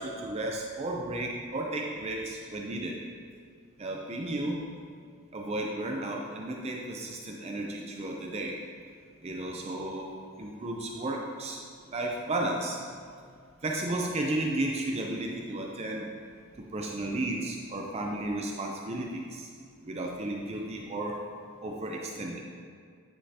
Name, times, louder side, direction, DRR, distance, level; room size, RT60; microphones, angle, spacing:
voice 1, 0.0-3.0 3.8-4.6 5.3-8.6 9.2-10.1 10.4-11.6 11.9-12.8 13.6-16.1 16.7-19.5 19.8-21.2 21.6-22.4, right 1 dB, 30° right, 0 dB, 0.5 m, -33 dB
9.9 x 5.4 x 2.8 m, 2.1 s
head